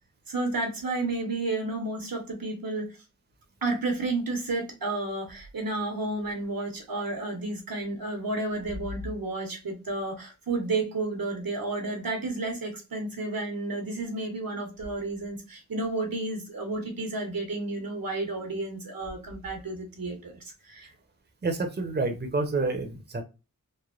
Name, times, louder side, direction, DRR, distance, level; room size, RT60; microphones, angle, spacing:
voice 1, 0.3-3.0 3.6-20.9, right 2 dB, 85° right, 3 dB, 0.9 m, -31 dB
voice 2, 21.4-23.2, right 3 dB, 30° right, 5 dB, 0.6 m, -28 dB
3.1 x 2.1 x 2.4 m, 0.29 s
wide cardioid pair, 40°, 34 cm